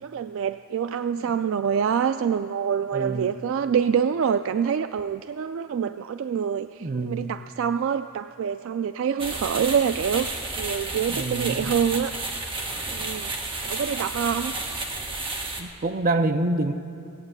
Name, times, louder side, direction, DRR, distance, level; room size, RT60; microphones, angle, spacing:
voice 1, 0.0-10.3 10.6-12.1 12.9-13.3 13.6-14.5, right 7 dB, 65° right, 10 dB, 0.3 m, -26 dB
voice 2, 2.9-3.3 6.8-7.3 11.1-11.7 15.6-16.7, right 2 dB, 40° right, 7 dB, 0.7 m, -26 dB
sound 1, 9.2-15.6, right 2 dB, 25° right, 1.3 m, -31 dB
17.5 x 8.8 x 8.0 m, 2.6 s
head